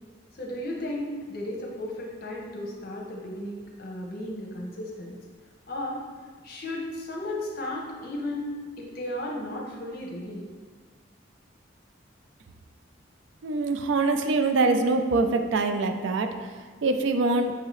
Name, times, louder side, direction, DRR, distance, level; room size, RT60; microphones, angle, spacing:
voice 1, 0.3-5.2 5.7-6.0 6.4-10.4, left 1 dB, 50° left, -1 dB, 0.8 m, -34 dB
voice 2, 13.4-16.3 16.8-17.5, right 3 dB, 80° right, 6 dB, 0.4 m, -24 dB
5.9 x 2.7 x 3.1 m, 1.5 s
head